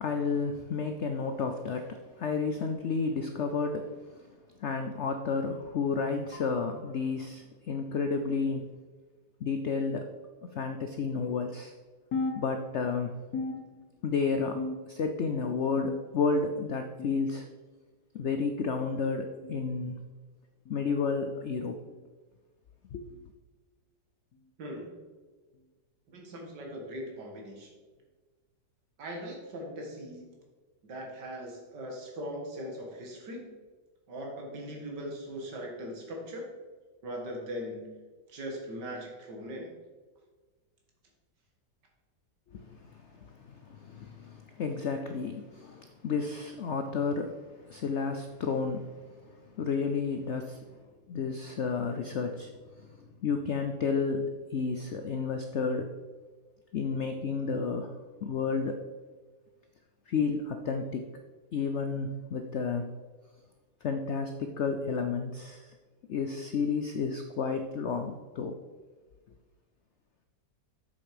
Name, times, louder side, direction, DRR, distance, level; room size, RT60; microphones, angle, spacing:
voice 1, 0.0-4.3 4.6-8.7 9.4-10.1 10.5-11.7 12.3-13.2 14.0-14.6 14.9-17.5 18.1-20.0 20.7-21.8 22.9-23.1 42.5-47.4 47.7-49.1 49.6-50.6 51.1-52.5 52.8-52.9 53.2-55.9 56.7-57.9 58.2-58.8 60.1-61.1 61.5-62.9 63.8-65.7 66.1-68.6, left 5 dB, 75° left, 6 dB, 0.6 m, -31 dB
sound 1, 12.1-13.0 13.3-14.1 14.6-15.2 15.8-16.4 17.0-17.4 18.2-18.5 19.4-19.7 20.7-20.9 21.9-22.1 23.1-23.3 24.3-24.5 25.5-25.6 26.8-26.9, left 3 dB, 60° left, 1.5 m, -37 dB
voice 2, 24.6-24.9 26.1-27.7 29.0-30.3 30.8-33.5 34.1-36.5 37.0-37.9 38.3-39.7, equal, 70° right, 0 dB, 2.4 m, -40 dB
7.6 x 7.0 x 5.0 m, 1.4 s
omnidirectional pair, 1.9 m